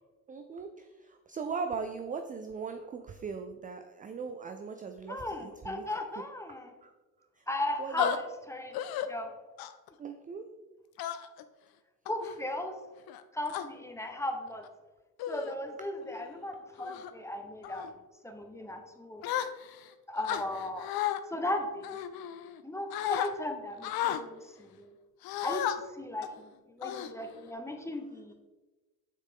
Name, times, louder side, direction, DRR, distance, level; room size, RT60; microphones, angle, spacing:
voice 1, 0.3-5.8 6.8-6.9 7.4-7.5 7.8-8.2 10.0-10.5, right 5 dB, 20° right, 7 dB, 0.4 m, -39 dB
voice 2, 5.1-6.7 7.5-8.8 9.1-9.3 12.1-12.7 13.3-14.7 15.3-17.9 18.2-19.2 20.1-20.9 21.3-22.0 22.6-24.9 25.4-28.3, left 1 dB, 5° left, 4 dB, 1.0 m, -37 dB
sound 1, 8.0-8.2 8.7-9.1 9.6-9.9 11.0-11.4 12.1-12.4 13.1-13.7 14.5-14.7 15.2-15.6 16.0-16.3 16.8-17.1 17.6-17.9 19.2-19.9 20.2-21.2 21.8-22.6 22.9-23.3 23.8-24.2 25.2-25.8 26.2-26.4 26.8-27.5, left 11 dB, 55° left, 0.6 m, -34 dB
6.6 x 4.8 x 3.6 m, 1.2 s
hypercardioid pair, 70°, 44 cm